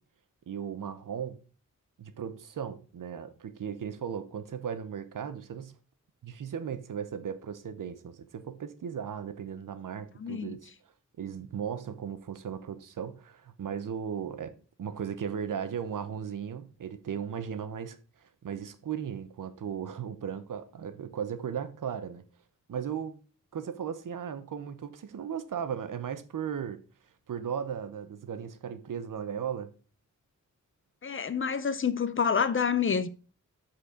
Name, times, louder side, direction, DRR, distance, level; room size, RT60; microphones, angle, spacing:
voice 1, 0.5-1.4 2.0-5.7 6.2-10.7 11.2-14.5 14.8-18.0 18.2-22.2 22.7-23.2 23.5-26.8 27.3-29.7, right 8 dB, 85° right, 0.8 m, -36 dB
voice 2, 10.2-10.5 31.0-33.1, left 6 dB, 40° left, 0.6 m, -28 dB
7.6 x 4.4 x 5.0 m
wide cardioid pair, 145°, 31 cm